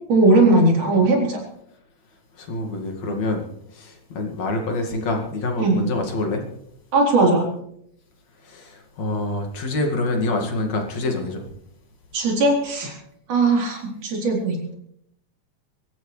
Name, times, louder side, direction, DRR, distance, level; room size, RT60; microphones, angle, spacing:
voice 1, 0.1-1.4 5.6-5.8 6.9-7.4 12.1-12.9 13.3-14.7, right 2 dB, 80° right, -1 dB, 5.4 m, -18 dB
voice 2, 2.4-3.4 3.7-6.4 8.4-11.4, left 2 dB, 60° left, 2 dB, 3.4 m, -26 dB
25.0 x 14.0 x 3.3 m, 0.73 s
omnidirectional pair, 3.5 m